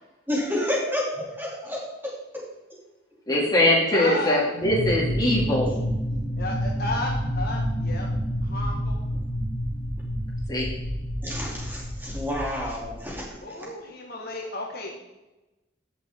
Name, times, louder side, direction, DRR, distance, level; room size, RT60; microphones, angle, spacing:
voice 1, 0.3-1.8 11.2-13.2 13.6-13.7, left 1 dB, 10° right, -5 dB, 2.8 m, -29 dB
voice 2, 3.3-5.7 10.5-10.7, left 1 dB, 20° left, -3 dB, 2.5 m, -22 dB
voice 3, 3.9-4.3 6.4-8.1 8.4-9.0 13.4-14.9, left 2 dB, 50° left, 0 dB, 1.4 m, -32 dB
sound 1, 4.6-13.2, equal, 40° right, 2.5 m, -29 dB
15.5 x 6.1 x 3.6 m, 1.0 s
head